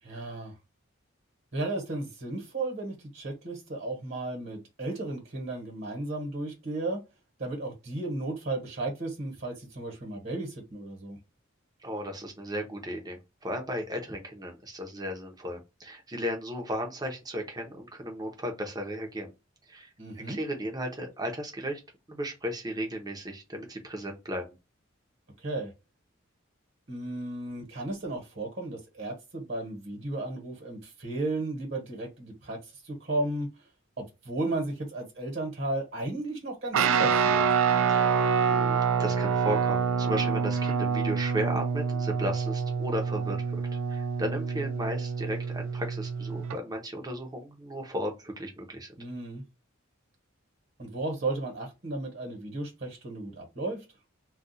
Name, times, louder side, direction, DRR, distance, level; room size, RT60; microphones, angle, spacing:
voice 1, 0.0-0.5 1.5-7.0 7.4-11.2 20.0-20.4 25.4-25.7 26.9-32.6 32.8-33.5 34.0-37.6 49.0-49.4 50.8-53.8, right 2 dB, 55° right, 1.2 m, -34 dB
voice 2, 11.8-19.3 19.7-19.9 20.3-21.8 22.1-24.5 37.9-38.2 38.5-43.4 43.9-48.9, equal, 20° right, 0.7 m, -35 dB
Guitar, 36.7-46.6, right 6 dB, 90° right, 0.4 m, -27 dB
2.4 x 2.3 x 4.0 m
head